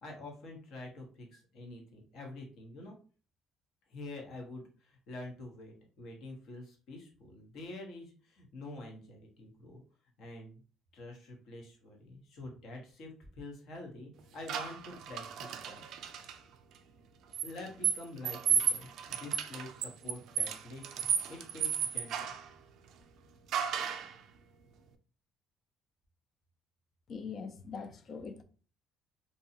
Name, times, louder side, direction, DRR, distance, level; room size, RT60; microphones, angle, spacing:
voice 1, 0.0-3.0 3.9-9.8 10.2-10.6 10.9-15.8 17.4-22.3, left 2 dB, 65° left, 1 dB, 1.0 m, -47 dB
sound 1, 14.5-16.4 17.3-22.5 23.5-24.1, right 8 dB, 65° right, 0.3 m, -33 dB
voice 2, 27.1-28.4, left 5 dB, 40° left, 8 dB, 0.4 m, -42 dB
2.7 x 2.2 x 2.7 m, 0.38 s
cardioid pair, 135°, 0 cm